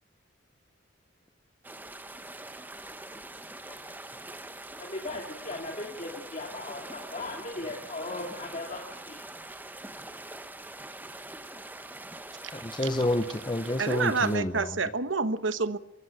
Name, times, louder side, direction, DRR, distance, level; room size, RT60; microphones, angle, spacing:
sound 1, 1.6-14.4, right 2 dB, 10° right, 1.1 m, -44 dB
voice 1, 3.6-3.9 4.8-9.2, left 2 dB, 40° left, 2.4 m, -38 dB
voice 2, 12.5-14.8, left 1 dB, 25° left, 0.9 m, -29 dB
voice 3, 13.8-15.8, right 4 dB, 85° right, 1.2 m, -28 dB
23.5 x 14.5 x 7.9 m
head